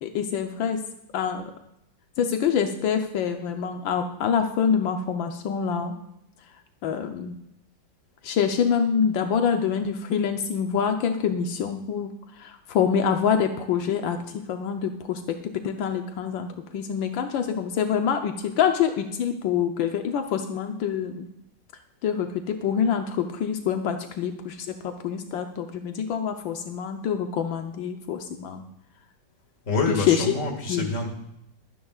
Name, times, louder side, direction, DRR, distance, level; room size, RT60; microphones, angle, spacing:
voice 1, 0.0-0.8 1.1-1.5 2.2-6.0 6.8-7.3 8.2-12.1 12.4-15.4 15.6-21.3 22.0-28.6 29.9-30.2 30.7-30.9, left 7 dB, 85° left, 5 dB, 1.6 m, -26 dB
voice 2, 29.7-31.1, left 2 dB, 45° left, 3 dB, 2.3 m, -26 dB
23.0 x 10.0 x 2.4 m, 0.80 s
omnidirectional pair, 2.0 m